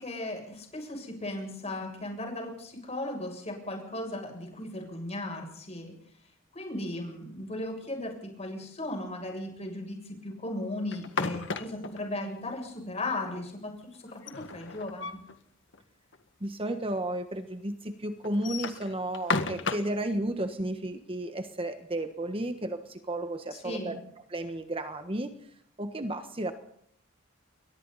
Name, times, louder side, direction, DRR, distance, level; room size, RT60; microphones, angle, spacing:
voice 1, 0.0-5.9 6.5-15.2 23.5-24.0, left 1 dB, 30° left, 2 dB, 7.3 m, -37 dB
dörr med metallbeslag, 10.9-12.0 14.1-15.3 15.7-15.8 16.1-16.2 17.0-17.1 18.2-20.0, left 4 dB, 65° left, 1.8 m, -33 dB
voice 2, 16.4-24.0 24.3-26.5, right 1 dB, 25° right, 8 dB, 1.3 m, -33 dB
28.5 x 23.0 x 4.2 m, 0.66 s
head